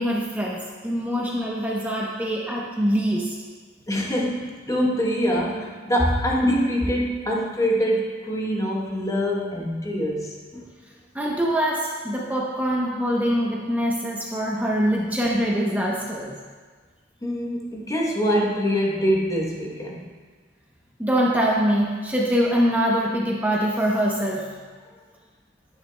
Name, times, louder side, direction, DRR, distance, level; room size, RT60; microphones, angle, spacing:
voice 1, 0.0-3.3 11.1-16.4 21.0-24.4, equal, 10° right, -4 dB, 0.8 m, -24 dB
voice 2, 3.9-10.6 17.2-20.1, equal, 15° left, -2 dB, 1.0 m, -24 dB
10.5 x 9.1 x 2.2 m, 1.5 s
head